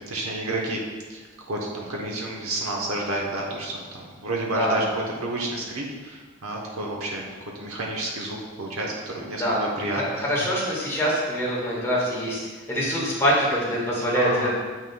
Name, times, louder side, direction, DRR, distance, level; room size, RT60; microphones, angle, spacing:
voice 1, 0.1-0.8 1.1-1.2 1.5-7.2 7.6-10.5 14.1-14.5, right 1 dB, 80° right, -2 dB, 1.0 m, -30 dB
voice 2, 9.9-12.4 12.7-14.5, equal, 15° left, -6 dB, 1.6 m, -24 dB
7.6 x 6.0 x 2.3 m, 1.4 s
head